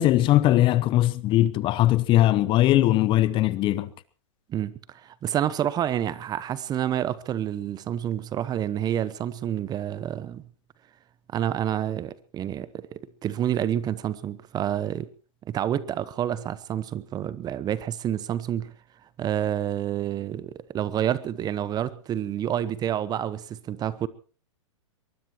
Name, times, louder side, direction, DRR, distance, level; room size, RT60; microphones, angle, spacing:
voice 1, 0.0-3.9, left 14 dB, 30° left, 0.9 m, -20 dB
voice 2, 4.5-10.4 11.3-15.1 15.5-18.7 19.2-24.1, right 10 dB, 25° right, 0.9 m, -28 dB
23.5 x 20.5 x 3.0 m
hypercardioid pair, 115°, 17 cm